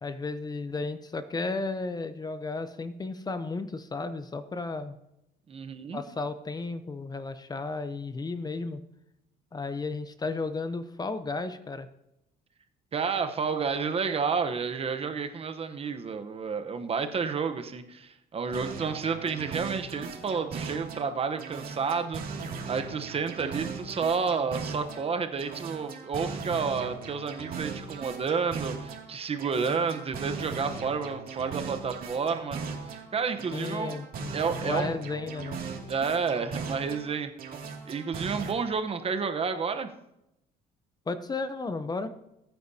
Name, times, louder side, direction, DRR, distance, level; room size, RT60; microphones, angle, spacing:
voice 1, 0.0-4.9 5.9-8.8 9.5-11.9 33.5-34.3 34.6-35.6 41.1-42.1, left 3 dB, 25° left, 11 dB, 0.7 m, -33 dB
voice 2, 5.5-6.0 12.9-22.2 22.7-32.6 32.9-33.9 34.3-34.9 35.9-37.3 37.9-39.9, right 5 dB, 35° right, 8 dB, 1.0 m, -30 dB
sound 1, 18.5-21.1 21.4-25.1 25.4-29.1 29.4-33.1 33.4-37.1 37.4-38.5, right 5 dB, 60° right, 2.5 m, -38 dB
20.5 x 9.3 x 2.8 m, 0.85 s
cardioid pair, 110°, 17 cm